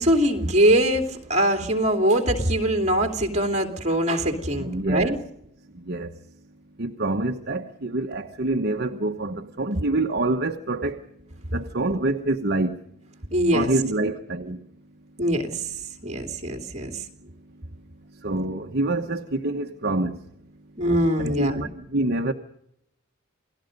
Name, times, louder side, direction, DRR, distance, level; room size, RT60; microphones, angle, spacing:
voice 1, 0.0-5.2 13.3-13.7 15.2-17.0 20.8-21.7, right 1 dB, 35° right, 2.9 m, -22 dB
voice 2, 4.6-5.2 5.9-6.1 6.8-11.0 11.5-12.8 13.5-14.6 18.2-20.2 21.2-22.3, right 2 dB, 50° right, 1.1 m, -26 dB
28.5 x 18.5 x 5.4 m
head